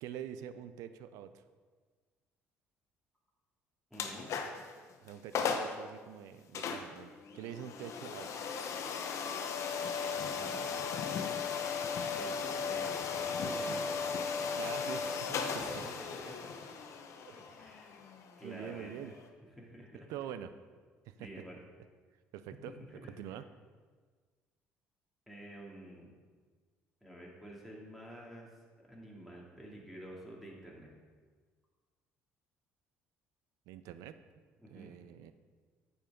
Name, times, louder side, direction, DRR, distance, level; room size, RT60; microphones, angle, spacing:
voice 1, 0.0-1.3 5.0-8.4 14.6-15.3 15.5-15.6 17.3-17.4 18.4-19.1 20.1-20.5 21.1-21.3 22.3-22.7 23.2-23.4 33.7-34.2 34.7-35.3, right 10 dB, 75° right, 12 dB, 0.5 m, -45 dB
sound 1, 3.9-4.7 5.1-5.2 5.3-5.8 6.5-19.3, left 6 dB, 60° left, 0.9 m, -37 dB
voice 2, 3.9-4.3 10.2-10.5 12.2-13.9 15.3-16.5 17.3-18.0 18.4-19.1 19.5-20.1 21.2-21.6 22.7-23.1 25.3-26.1 27.0-28.5 28.9-30.9 34.6-34.9, right 1 dB, ahead, -3 dB, 2.6 m, -49 dB
9.1 x 7.0 x 3.7 m, 1.5 s
hypercardioid pair, 65°, 6 cm